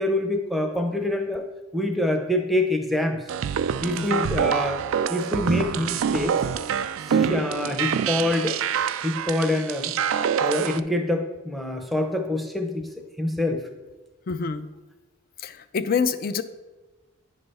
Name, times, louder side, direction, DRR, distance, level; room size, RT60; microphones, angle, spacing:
voice 1, 0.0-1.4 1.7-3.2 3.8-4.8 5.1-6.4 7.1-8.6 9.0-9.9 10.4-12.9 13.2-13.6, left 1 dB, ahead, 3 dB, 0.6 m, -25 dB
sound 1, 3.3-10.8, right 8 dB, 70° right, 0.3 m, -26 dB
voice 2, 4.0-4.3 7.1-7.4 14.3-14.7 15.4-16.4, left 5 dB, 40° left, 11 dB, 0.4 m, -27 dB
9.6 x 3.3 x 5.4 m, 1.2 s
head